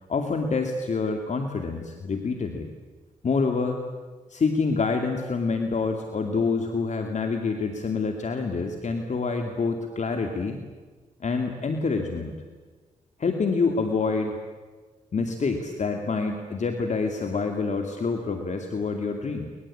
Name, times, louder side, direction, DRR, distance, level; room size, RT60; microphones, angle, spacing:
voice 1, 0.1-2.7 3.2-3.8 4.3-10.6 11.2-12.4 13.2-14.4 15.1-19.5, left 4 dB, 55° left, 5 dB, 2.5 m, -27 dB
23.5 x 21.0 x 8.6 m, 1.4 s
supercardioid pair, 55°, 15 cm